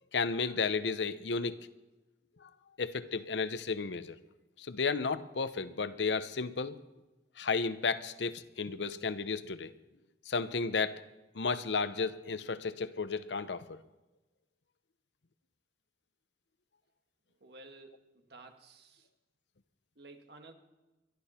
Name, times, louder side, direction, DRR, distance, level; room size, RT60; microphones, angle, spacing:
voice 1, 0.1-1.6 2.4-2.5 2.8-4.2 4.6-6.8 7.4-9.7 10.3-11.0 11.3-13.8, left 4 dB, 80° left, 13 dB, 0.8 m, -33 dB
voice 2, 17.4-19.1 20.0-20.5, right 2 dB, 65° right, 4 dB, 1.8 m, -53 dB
22.5 x 12.0 x 4.4 m, 1.1 s
head